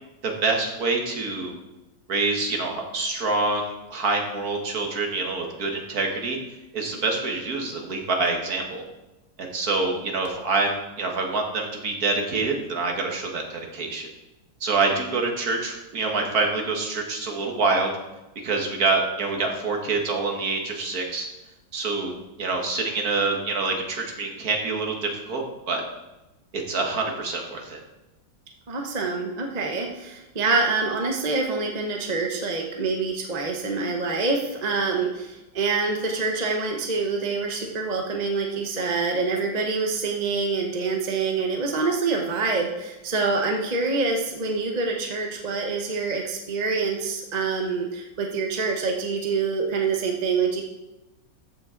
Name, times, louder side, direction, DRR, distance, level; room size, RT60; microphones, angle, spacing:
voice 1, 0.2-1.5 2.1-6.4 6.7-8.8 9.4-14.1 14.6-17.9 18.4-21.3 21.7-22.1 22.4-25.8 26.7-27.8, right 3 dB, 55° right, 2 dB, 1.9 m, -26 dB
voice 2, 28.7-50.6, right 4 dB, 35° right, 1 dB, 0.7 m, -26 dB
14.0 x 6.0 x 3.8 m, 1.0 s
omnidirectional pair, 2.0 m